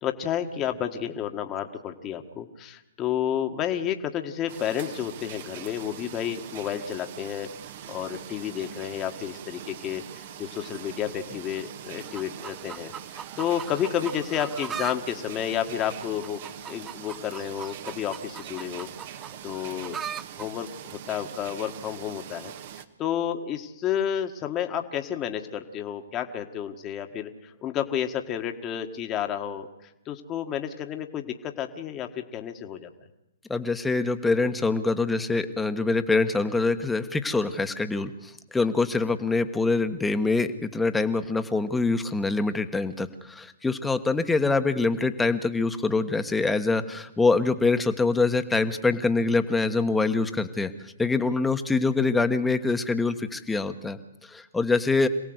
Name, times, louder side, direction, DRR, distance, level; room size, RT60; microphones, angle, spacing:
voice 1, 0.0-7.5 7.9-16.4 16.7-20.0 20.4-29.7 30.0-32.9, left 9 dB, 25° left, 6 dB, 1.7 m, -31 dB
sound 1, 4.5-22.9, right 10 dB, 50° right, 1.6 m, -42 dB
sound 2, 12.1-15.0 15.3-20.5 21.3-21.4, right 8 dB, 15° right, 0.7 m, -39 dB
voice 2, 33.5-55.1, left 3 dB, 5° left, 8 dB, 1.4 m, -25 dB
26.5 x 17.5 x 8.1 m, 0.94 s
hypercardioid pair, 125°, 0 cm